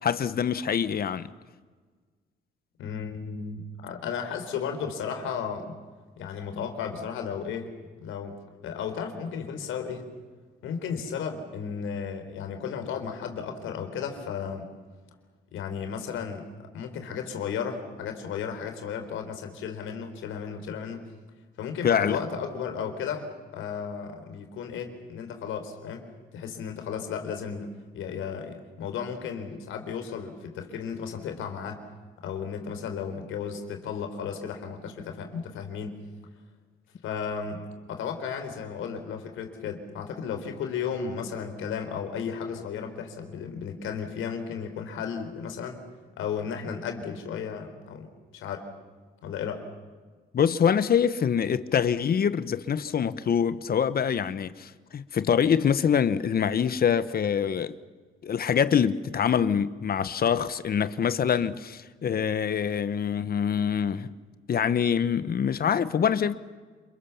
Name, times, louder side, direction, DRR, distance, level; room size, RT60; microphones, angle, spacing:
voice 1, 0.0-1.3 21.8-22.2 50.3-57.7 58.2-64.1 64.5-66.3, left 7 dB, 50° left, 1.1 m, -25 dB
voice 2, 2.8-5.8 6.2-7.7 8.0-10.1 10.6-14.7 15.5-16.5 16.7-21.1 21.6-26.1 26.3-27.7 27.9-31.8 32.2-36.0 37.0-45.8 46.2-48.7 49.2-49.7, left 6 dB, 85° left, 4.0 m, -34 dB
28.5 x 22.5 x 7.1 m
cardioid pair, 90°, 20 cm